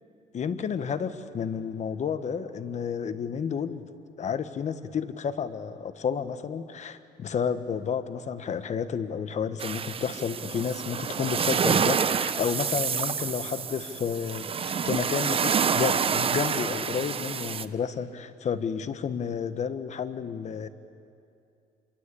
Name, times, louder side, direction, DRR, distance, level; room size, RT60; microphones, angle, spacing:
voice 1, 0.3-3.8 4.2-20.7, left 7 dB, 45° left, 11 dB, 1.3 m, -31 dB
sound 1, 9.6-17.7, right 7 dB, 35° right, 0.8 m, -28 dB
27.5 x 23.5 x 8.5 m, 2.5 s
cardioid pair, 110°, 17 cm